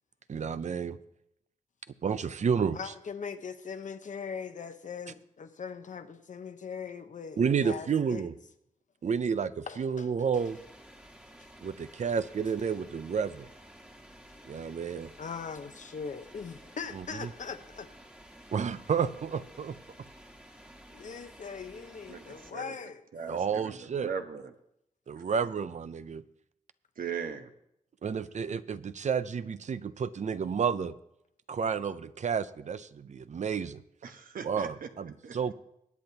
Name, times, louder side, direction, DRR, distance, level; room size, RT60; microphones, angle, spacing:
voice 1, 0.3-1.0 2.0-2.8 7.4-8.3 9.0-10.6 11.6-13.5 14.5-15.1 16.9-17.3 18.5-19.8 23.3-24.1 25.1-26.2 28.0-30.9 31.5-33.8 34.4-35.5, right 6 dB, 55° right, 0.5 m, -31 dB
voice 2, 2.7-8.3 9.7-10.3 11.4-11.5 15.2-17.9 20.9-23.0, left 6 dB, 60° left, 0.9 m, -40 dB
sound 1, 10.3-22.5, equal, 10° right, 1.5 m, -53 dB
voice 3, 22.1-22.8 23.1-24.5 27.0-27.5 34.0-35.5, right 6 dB, 80° right, 1.1 m, -39 dB
21.5 x 8.8 x 2.8 m
cardioid pair, 75°, 14 cm